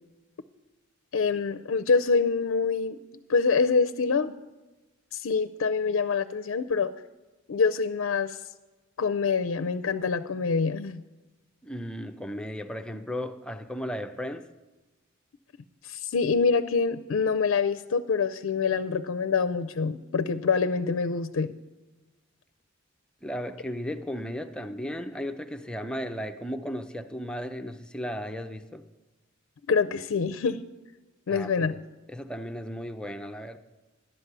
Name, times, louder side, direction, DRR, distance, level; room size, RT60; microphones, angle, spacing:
voice 1, 1.1-3.0 3.3-4.3 5.1-6.9 7.5-8.4 9.0-11.0 15.8-21.5 29.7-30.6 31.3-31.7, left 5 dB, 70° left, 0.5 m, -25 dB
voice 2, 11.6-14.5 23.2-28.8 31.3-31.8 32.1-33.6, equal, 5° left, 0.5 m, -35 dB
11.5 x 9.6 x 6.7 m
head